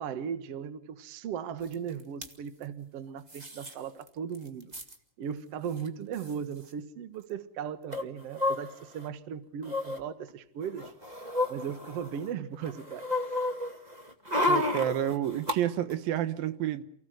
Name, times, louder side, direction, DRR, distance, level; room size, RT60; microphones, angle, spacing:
voice 1, 0.0-4.7 5.2-11.2 11.5-13.1, right 7 dB, 55° right, 2.1 m, -37 dB
sound 1, 1.7-1.8 2.0-2.3 3.3-3.7 4.1-4.2 4.3-4.9 5.8-5.9 6.1-6.3 7.9-9.0 9.6-10.0 10.6-12.3 12.6-15.6 15.9-16.0, left 2 dB, 15° right, 1.4 m, -31 dB
voice 2, 14.5-16.8, right 11 dB, 85° right, 3.0 m, -29 dB
29.0 x 17.0 x 9.2 m
omnidirectional pair, 4.0 m